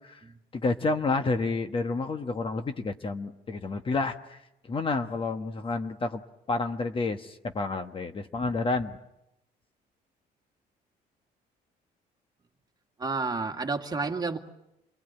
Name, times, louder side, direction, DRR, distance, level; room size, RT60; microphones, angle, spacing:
voice 1, 0.5-4.4 4.7-6.2 6.5-9.0, left 3 dB, 30° left, 8 dB, 1.3 m, -29 dB
voice 2, 13.0-14.4, right 4 dB, 25° right, 4 dB, 2.0 m, -30 dB
27.5 x 19.5 x 9.0 m, 0.86 s
cardioid pair, 110°, 17 cm